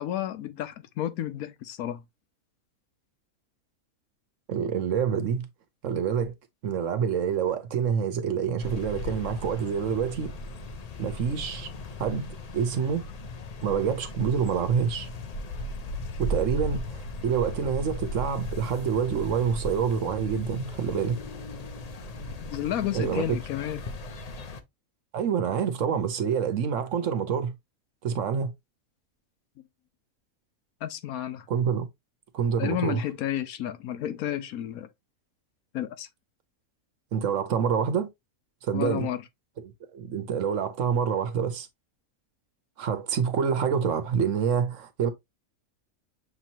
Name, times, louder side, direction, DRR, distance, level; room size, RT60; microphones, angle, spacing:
voice 1, 0.0-2.0 22.2-23.8 30.8-31.5 32.6-34.9 35.7-36.1 38.7-39.2, left 11 dB, 85° left, 1.1 m, -31 dB
voice 2, 4.5-5.5 5.8-6.3 6.6-10.3 11.0-11.7 12.0-12.3 12.5-13.0 13.6-15.1 16.2-21.2 22.9-23.4 25.1-27.5 28.0-28.5 31.5-31.9 32.3-33.0 37.1-38.1 38.6-39.1 39.6-41.7 42.8-45.1, right 7 dB, 65° right, 1.1 m, -27 dB
sound 1, 8.6-24.6, left 1 dB, 60° left, 0.4 m, -37 dB
6.5 x 3.0 x 2.7 m
omnidirectional pair, 1.5 m